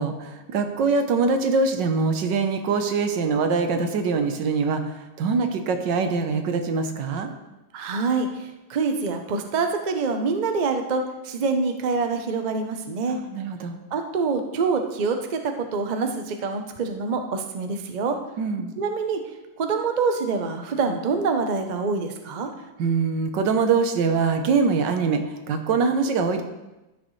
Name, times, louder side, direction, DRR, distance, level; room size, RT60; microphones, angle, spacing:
voice 1, 0.0-7.3 13.1-13.8 18.4-18.7 22.8-26.4, right 4 dB, 75° right, 6 dB, 1.6 m, -23 dB
voice 2, 7.7-13.2 13.9-18.2 18.8-19.2 19.6-22.5, right 4 dB, 60° right, 5 dB, 0.4 m, -26 dB
14.0 x 6.4 x 3.2 m, 1.0 s
omnidirectional pair, 2.0 m